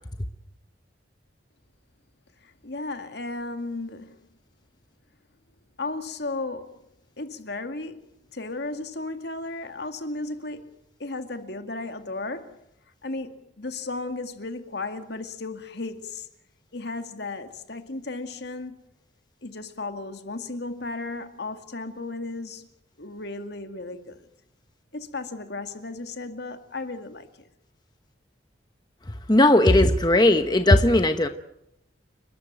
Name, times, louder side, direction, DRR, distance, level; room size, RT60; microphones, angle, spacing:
voice 1, 2.4-4.2 5.8-6.8 7.2-10.7 11.0-12.6 13.0-16.3 16.7-18.8 19.4-22.7 23.0-24.3 24.9-27.3, left 2 dB, 60° left, 2.2 m, -35 dB
voice 2, 29.3-31.3, left 1 dB, 20° left, 1.0 m, -17 dB
30.0 x 13.5 x 9.2 m
head